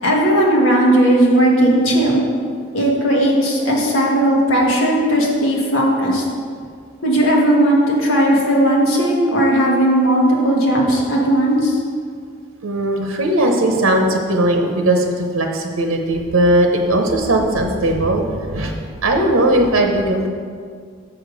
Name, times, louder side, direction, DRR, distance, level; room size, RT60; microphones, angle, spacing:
voice 1, 0.0-2.2 2.7-6.2 7.0-11.8, right 1 dB, 75° left, -2 dB, 1.6 m, -16 dB
voice 2, 1.0-1.8 7.9-8.1 10.0-10.5 12.6-18.7 19.0-20.3, right 1 dB, 85° right, 2 dB, 0.8 m, -18 dB
7.1 x 5.0 x 6.4 m, 2.1 s
head